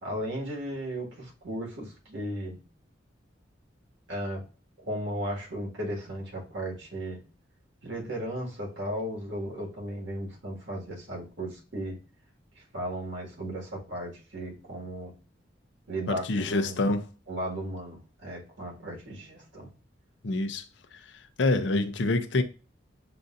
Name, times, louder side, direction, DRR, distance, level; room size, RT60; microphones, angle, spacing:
voice 1, 0.0-2.6 4.1-4.4 4.8-7.2 7.8-12.0 12.6-15.1 15.9-16.8 17.3-19.7, right 1 dB, 75° right, 1.8 m, -35 dB
voice 2, 16.1-17.1 20.2-20.6 21.4-22.4, left 2 dB, 70° left, 0.6 m, -26 dB
6.6 x 2.6 x 2.5 m
head